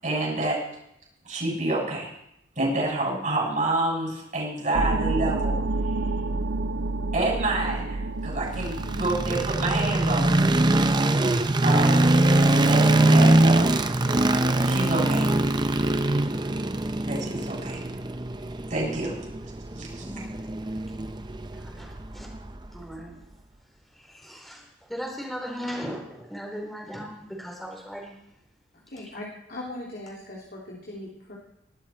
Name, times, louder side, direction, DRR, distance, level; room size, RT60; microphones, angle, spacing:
voice 1, 0.0-0.6 1.2-2.1 2.6-5.6 7.1-10.4 11.6-12.0 12.6-13.8 14.6-15.3 17.0-17.8 18.7-19.1 19.8-20.1, right 2 dB, 40° right, -3 dB, 7.1 m, -28 dB
sound 1, 4.7-11.0, right 2 dB, 65° right, 0.7 m, -29 dB
sound 2, 8.5-22.7, right 2 dB, 25° right, 0.7 m, -22 dB
voice 2, 20.0-20.4 21.6-22.3 22.7-23.1 23.9-28.2, equal, ahead, -1 dB, 3.9 m, -37 dB
voice 3, 28.7-31.4, left 1 dB, 50° left, -3 dB, 3.0 m, -39 dB
21.0 x 12.5 x 4.4 m, 0.79 s
head